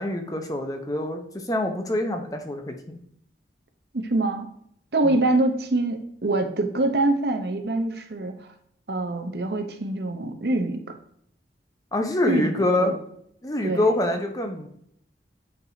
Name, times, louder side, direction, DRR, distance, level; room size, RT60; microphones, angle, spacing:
voice 1, 0.0-3.0 5.0-5.1 11.9-13.0 13.4-14.7, left 1 dB, 20° left, 4 dB, 0.8 m, -25 dB
voice 2, 3.9-4.5 4.9-8.3 8.9-10.8 12.3-13.0 13.6-13.8, right 2 dB, 65° right, 6 dB, 0.8 m, -24 dB
8.5 x 4.7 x 2.7 m, 0.71 s
head